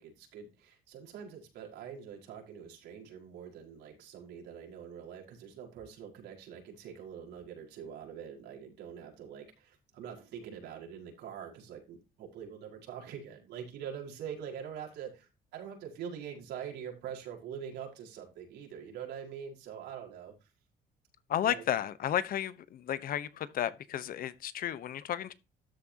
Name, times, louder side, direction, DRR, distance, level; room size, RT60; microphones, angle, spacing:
voice 1, 0.0-20.5 21.4-21.6, right 8 dB, 80° right, 5.2 m, -44 dB
voice 2, 21.3-25.3, left 11 dB, 60° left, 1.1 m, -33 dB
13.0 x 9.1 x 2.9 m
cardioid pair, 110°, 17 cm